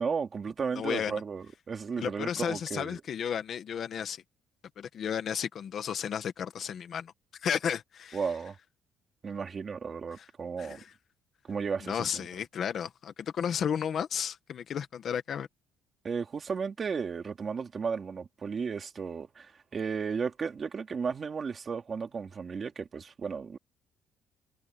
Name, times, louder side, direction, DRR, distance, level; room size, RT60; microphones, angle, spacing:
voice 1, 0.0-3.0 8.1-8.5 9.2-10.8 11.5-12.2 16.0-23.6, right 5 dB, 30° right, 3.2 m, -34 dB
voice 2, 0.7-1.2 2.0-4.2 4.8-7.1 7.4-8.2 10.2-10.3 10.6-10.9 11.8-15.5, left 8 dB, 45° left, 1.4 m, -33 dB
cardioid pair, 170°, 0 cm